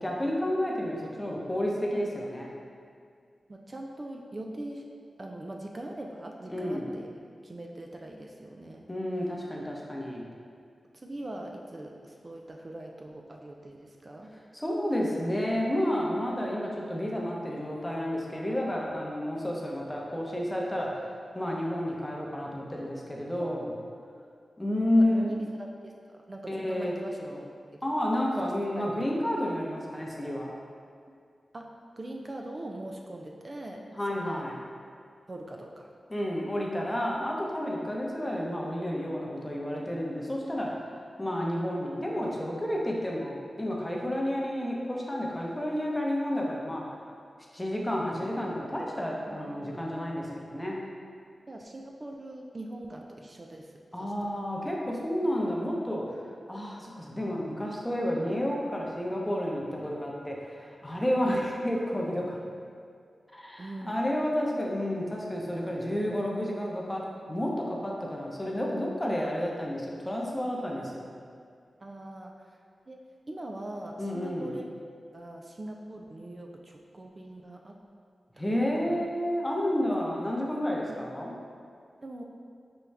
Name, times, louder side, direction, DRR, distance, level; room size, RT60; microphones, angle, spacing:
voice 1, 0.0-2.5 6.5-6.9 8.9-10.2 14.5-21.0 21.3-23.7 24.6-25.4 26.5-26.9 27.2-27.4 27.8-30.5 34.0-34.6 36.1-40.7 41.2-47.0 47.5-50.8 53.9-56.2 56.5-62.4 63.3-67.0 67.3-71.1 74.0-74.5 78.4-81.3, left 1 dB, 15° left, -2 dB, 0.7 m, -30 dB
voice 2, 3.5-4.9 5.2-8.9 10.9-14.3 23.4-23.8 24.9-27.9 28.4-28.9 31.1-31.2 31.5-31.7 32.0-33.8 34.1-34.5 35.3-35.9 49.3-49.5 51.5-54.4 61.2-61.4 63.6-64.0 71.8-72.6 72.9-73.0 73.3-74.6 75.1-77.8 78.4-78.5 78.9-79.1 80.9-81.0 82.0-82.2, right 1 dB, 40° right, 1 dB, 0.4 m, -42 dB
5.3 x 2.3 x 3.3 m, 2.2 s
cardioid pair, 45°, 0 cm